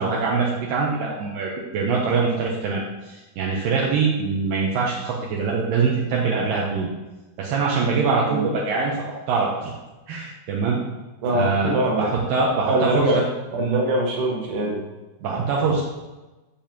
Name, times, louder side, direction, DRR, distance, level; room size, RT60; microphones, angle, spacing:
voice 1, 0.0-6.9 7.4-9.7 10.1-10.8 11.3-11.7 12.0-13.2 13.6-13.8 15.2-15.8, right 4 dB, 80° right, -3 dB, 2.6 m, -23 dB
voice 2, 11.2-12.1 12.6-13.2 13.5-14.8, right 1 dB, 65° right, -1 dB, 2.8 m, -23 dB
10.5 x 6.9 x 3.0 m, 1.1 s
omnidirectional pair, 4.1 m